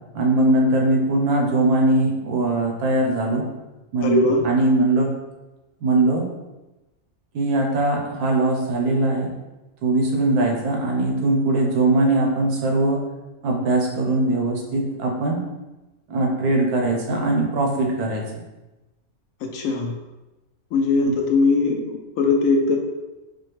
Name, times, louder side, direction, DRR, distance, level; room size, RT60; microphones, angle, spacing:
voice 1, 0.1-3.5 3.9-5.1 5.8-6.3 7.3-9.3 9.8-13.0 13.4-15.5 16.1-18.2 21.1-21.2, right 2 dB, 90° right, 0 dB, 1.3 m, -21 dB
voice 2, 4.0-4.4 19.4-19.9 20.7-22.8, left 3 dB, 70° left, 2 dB, 1.0 m, -20 dB
4.9 x 2.2 x 3.1 m, 1.1 s
omnidirectional pair, 1.6 m